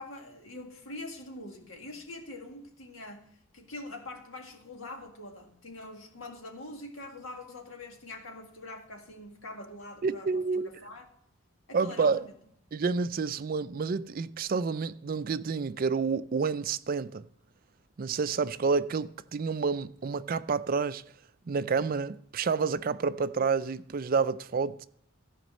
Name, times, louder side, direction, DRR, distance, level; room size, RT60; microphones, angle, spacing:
voice 1, 0.0-3.2 3.5-11.1 11.7-12.3, left 2 dB, 70° left, 2.0 m, -44 dB
voice 2, 10.0-10.7 11.7-12.3 12.7-17.3 18.0-21.1 21.5-24.9, right 5 dB, 40° right, 0.4 m, -29 dB
14.0 x 5.2 x 6.3 m
head